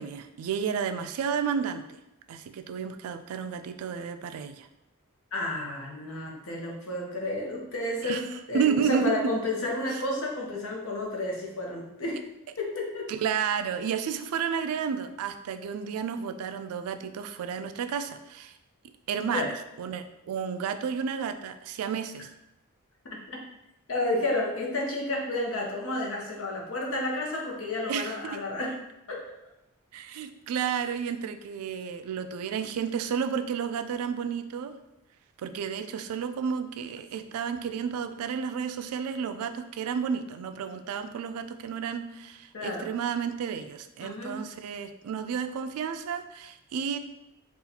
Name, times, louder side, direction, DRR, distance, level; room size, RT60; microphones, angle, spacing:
voice 1, 0.0-2.0 2.3-4.7 8.0-9.3 9.9-10.0 13.1-18.5 19.1-22.3 27.9-28.4 29.9-34.7 35.4-47.0, right 7 dB, 80° right, 12 dB, 0.3 m, -31 dB
voice 2, 5.3-12.2 12.6-13.1 19.3-19.5 23.9-28.7 29.1-29.2 42.5-42.9 44.0-44.4, left 2 dB, 65° left, -1 dB, 0.8 m, -31 dB
4.0 x 2.4 x 2.8 m, 0.90 s
head